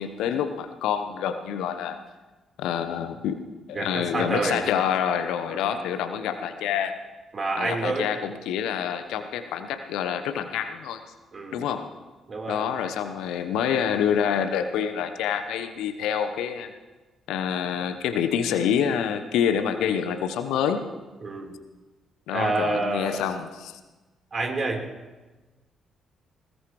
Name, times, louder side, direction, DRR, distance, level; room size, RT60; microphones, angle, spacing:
voice 1, 0.0-2.0 2.6-3.4 3.7-6.9 7.6-11.0 11.5-11.9 12.5-16.7 17.3-20.9 22.3-23.8, left 8 dB, 65° left, 8 dB, 1.0 m, -27 dB
voice 2, 3.7-4.6 5.5-5.7 7.3-8.1 11.3-11.6 12.3-12.6 21.2-21.5 22.3-23.2 24.3-24.8, right 3 dB, 40° right, 1 dB, 4.0 m, -28 dB
20.0 x 20.0 x 3.2 m, 1.2 s
figure-of-eight pair, 40°, 0 cm